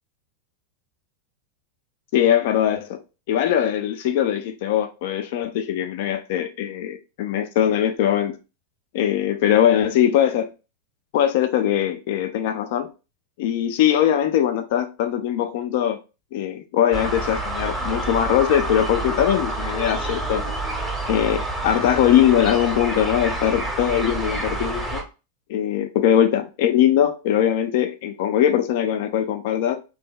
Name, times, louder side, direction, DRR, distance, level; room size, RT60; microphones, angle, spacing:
voice 1, 2.1-3.0 3.3-8.4 8.9-10.5 11.1-12.9 13.4-16.0 16.3-20.4 21.1-25.0 25.5-29.8, left 10 dB, 50° left, 0.3 m, -21 dB
sound 1, 16.9-25.0, right 2 dB, 5° right, 0.7 m, -28 dB
2.7 x 2.1 x 3.6 m
figure-of-eight pair, 90°, 0 cm